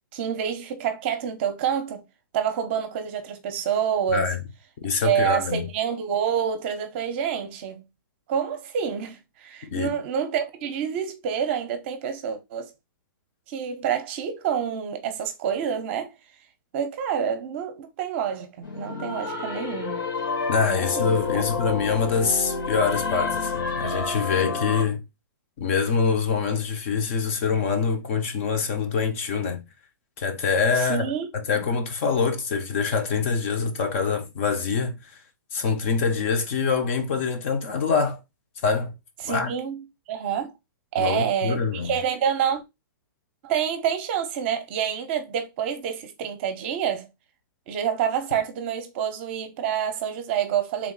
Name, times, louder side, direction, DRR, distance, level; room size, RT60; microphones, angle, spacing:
voice 1, 0.1-2.0 2.3-4.3 5.0-7.8 8.3-12.7 13.5-16.1 16.7-20.1 20.7-21.4 30.8-31.3 31.5-31.7 39.2-39.8 40.1-40.5 40.9-42.6 43.4-47.1 47.7-50.9, right 8 dB, 35° right, 0.7 m, -27 dB
voice 2, 4.8-5.7 9.7-9.9 20.5-25.0 25.6-29.6 30.2-35.0 35.5-38.2 38.6-38.9 39.2-39.5 41.0-41.9, left 5 dB, 35° left, 0.7 m, -25 dB
sound 1, 18.6-24.8, left 4 dB, 85° left, 2.0 m, -29 dB
3.5 x 2.6 x 3.9 m
hypercardioid pair, 160°, 11 cm